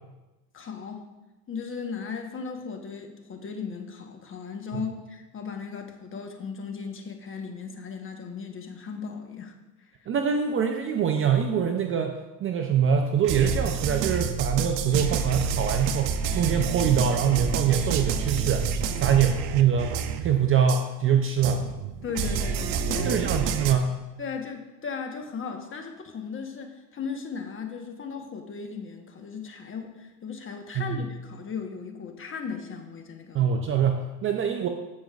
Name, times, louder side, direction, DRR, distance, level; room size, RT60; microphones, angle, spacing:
voice 1, 0.5-1.0 1.5-9.5 22.0-23.2 24.2-33.5, left 5 dB, 25° left, 4 dB, 1.1 m, -36 dB
voice 2, 10.1-18.7 19.0-21.7 23.0-24.0 30.7-31.0 33.3-34.7, right 7 dB, 25° right, 4 dB, 0.6 m, -24 dB
sound 1, 13.2-20.4 20.7-20.8 21.4-23.7, right 6 dB, 60° right, 0.8 m, -28 dB
15.5 x 5.2 x 2.4 m, 1.1 s
hypercardioid pair, 95°, 50 cm